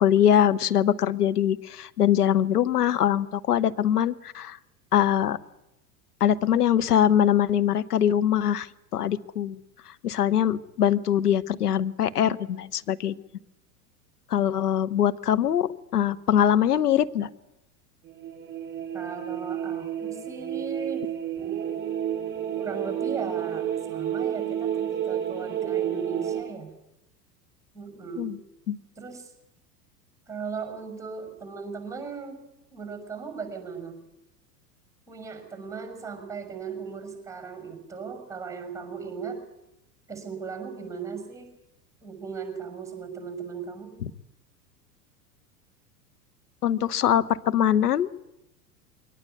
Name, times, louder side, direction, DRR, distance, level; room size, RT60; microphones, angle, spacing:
voice 1, 0.0-4.6 4.9-5.4 6.2-9.6 9.9-13.1 14.3-17.3 28.2-28.4 28.7-28.8 44.0-44.1 46.6-48.1, left 10 dB, 70° left, 13 dB, 1.1 m, -23 dB
sound 1, 18.1-26.4, right 10 dB, 25° right, 4.6 m, -30 dB
voice 2, 18.9-21.1 22.6-26.7 27.7-28.3 29.0-29.3 30.3-32.4 32.7-34.0 35.1-39.4 40.1-41.5 42.0-43.9, right 5 dB, 5° right, 6 dB, 5.9 m, -37 dB
22.5 x 19.0 x 8.4 m, 0.88 s
figure-of-eight pair, 85°, 48 cm